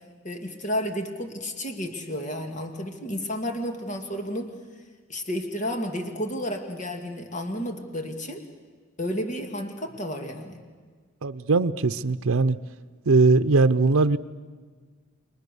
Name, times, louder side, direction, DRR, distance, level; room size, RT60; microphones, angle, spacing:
voice 1, 0.2-4.5 5.1-8.4 9.0-10.6, equal, 35° left, 5 dB, 2.0 m, -31 dB
voice 2, 11.2-12.6 13.1-14.2, right 3 dB, 90° right, 10 dB, 0.6 m, -20 dB
29.0 x 22.5 x 6.8 m, 1.5 s
head